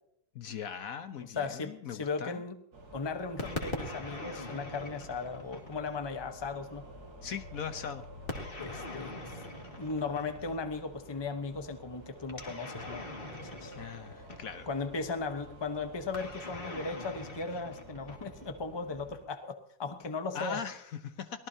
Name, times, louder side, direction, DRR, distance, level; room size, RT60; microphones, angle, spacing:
voice 1, 0.3-2.4 7.2-8.0 13.7-14.7 20.3-21.5, left 7 dB, 65° left, 9 dB, 1.3 m, -40 dB
voice 2, 1.2-2.6 2.9-6.9 8.6-9.1 9.8-13.1 13.4-13.7 14.7-20.6, left 4 dB, 20° left, 7 dB, 0.9 m, -37 dB
sound 1, 2.7-19.3, right 1 dB, 75° right, 2.6 m, -50 dB
sound 2, 3.4-6.0 8.3-10.6 12.3-14.8 16.1-18.6, left 2 dB, 35° left, 2.3 m, -42 dB
24.0 x 18.0 x 2.8 m, 0.72 s
omnidirectional pair, 1.7 m